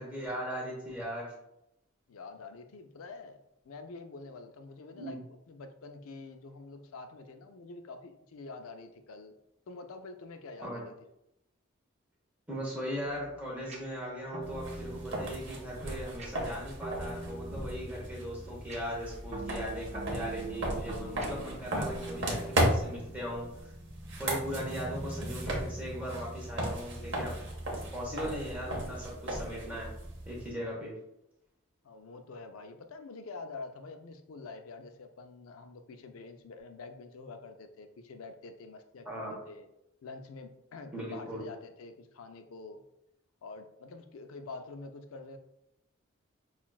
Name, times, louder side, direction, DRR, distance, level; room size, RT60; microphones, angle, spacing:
voice 1, 0.0-1.3 4.9-5.2 10.6-10.8 12.5-23.7 24.2-27.3 27.9-29.9 30.3-30.9 39.0-39.3 40.9-41.4, equal, 5° right, -4 dB, 0.9 m, -39 dB
voice 2, 2.1-5.2 5.5-9.3 9.7-10.9 31.8-39.7 40.0-42.8 43.4-45.4, left 3 dB, 85° left, 7 dB, 0.4 m, -46 dB
sound 1, 13.0-23.6, right 3 dB, 30° right, 0.6 m, -44 dB
sound 2, 14.4-30.5, right 1 dB, 55° right, 0.8 m, -36 dB
5.7 x 2.4 x 2.3 m, 0.83 s
head